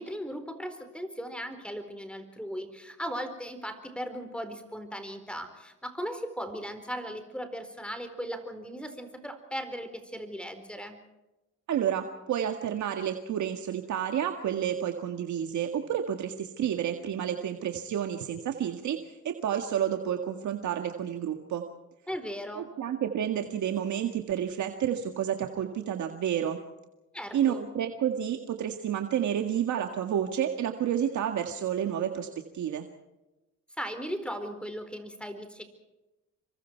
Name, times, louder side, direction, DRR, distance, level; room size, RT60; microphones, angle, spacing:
voice 1, 0.0-11.0 22.1-22.7 27.1-27.7 33.8-35.6, equal, 5° left, 8 dB, 4.3 m, -37 dB
voice 2, 11.7-21.6 22.6-26.6 27.3-32.3 32.5-32.8, right 9 dB, 70° right, 5 dB, 1.9 m, -30 dB
28.0 x 24.0 x 4.6 m, 1.0 s
cardioid pair, 90°, 30 cm